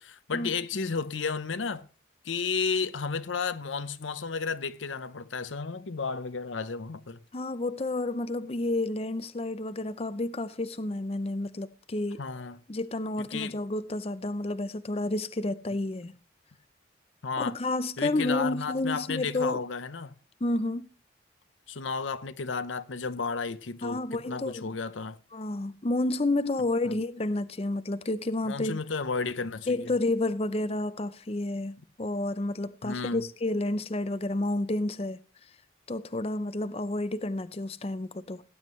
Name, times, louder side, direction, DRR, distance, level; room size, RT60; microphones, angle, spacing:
voice 1, 0.0-1.8 2.2-7.2 12.2-12.6 13.3-13.6 17.2-17.6 18.0-20.1 21.7-25.2 26.9-27.0 28.5-29.9 32.8-33.2, left 5 dB, 90° left, 0.8 m, -33 dB
voice 2, 7.3-12.2 12.7-16.1 17.4-19.6 20.4-20.9 23.8-24.7 25.3-28.8 29.7-35.2 35.9-38.4, left 2 dB, 30° left, 0.5 m, -30 dB
18.0 x 9.5 x 3.1 m
head